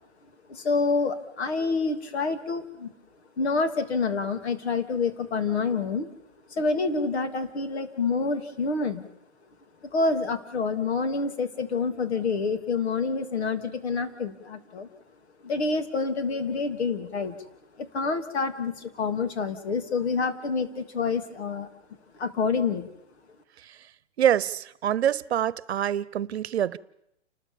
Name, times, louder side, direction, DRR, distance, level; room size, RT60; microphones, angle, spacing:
voice 1, 0.5-2.9 3.4-6.1 6.5-9.0 9.9-14.9 15.4-17.4 17.8-21.7 22.2-22.9, left 4 dB, 65° left, 3.2 m, -27 dB
voice 2, 24.2-26.8, right 10 dB, 65° right, 1.0 m, -25 dB
30.0 x 13.0 x 7.2 m
hypercardioid pair, 130°, 34 cm